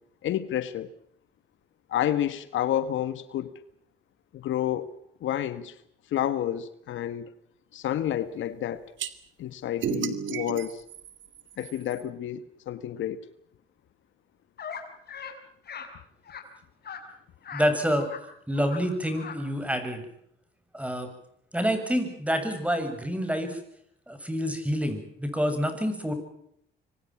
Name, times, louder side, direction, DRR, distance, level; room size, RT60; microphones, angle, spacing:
voice 1, 0.2-0.9 1.9-3.5 4.3-4.9 5.2-5.7 6.1-7.3 7.7-8.9 9.4-10.8 11.6-13.3, left 11 dB, 75° left, 1.5 m, -30 dB
sound 1, 9.0-9.1 9.8-12.0, right 9 dB, 70° right, 2.1 m, -33 dB
sound 2, 14.6-14.8 15.1-15.3 15.7-15.9 16.3-16.4 16.8-17.0 17.4-17.7 18.0-18.2 18.5-18.8 19.1-19.4, left 7 dB, 55° left, 5.4 m, -39 dB
voice 2, 17.5-18.1 18.5-20.0 20.7-21.1 21.5-23.6 24.1-26.1, equal, 5° right, 7.3 m, -27 dB
26.0 x 25.5 x 6.0 m
cardioid pair, 90°, 20 cm